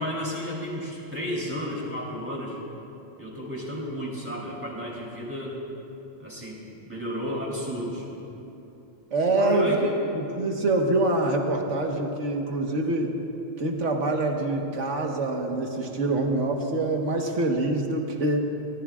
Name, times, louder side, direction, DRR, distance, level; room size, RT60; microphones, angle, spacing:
voice 1, 0.0-2.6 3.2-5.6 6.2-6.6 6.8-8.1 9.3-10.0, equal, 10° right, -4 dB, 3.4 m, -32 dB
voice 2, 9.1-9.8 10.1-13.2 13.6-18.5, right 2 dB, 60° right, 1 dB, 1.7 m, -25 dB
24.5 x 18.5 x 2.5 m, 3.0 s
omnidirectional pair, 1.4 m